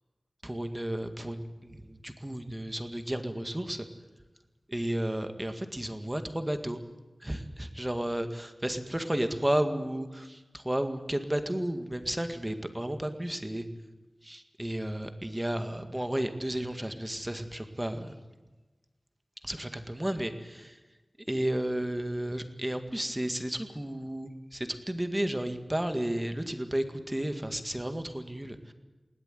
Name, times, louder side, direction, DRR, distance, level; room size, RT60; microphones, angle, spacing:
voice 1, 0.4-3.9 4.7-6.8 7.2-13.6 14.2-18.1 19.4-20.8 21.3-28.7, right 1 dB, 15° right, 8 dB, 1.9 m, -33 dB
20.0 x 18.0 x 9.2 m, 1.2 s
wide cardioid pair, 85°, 0 cm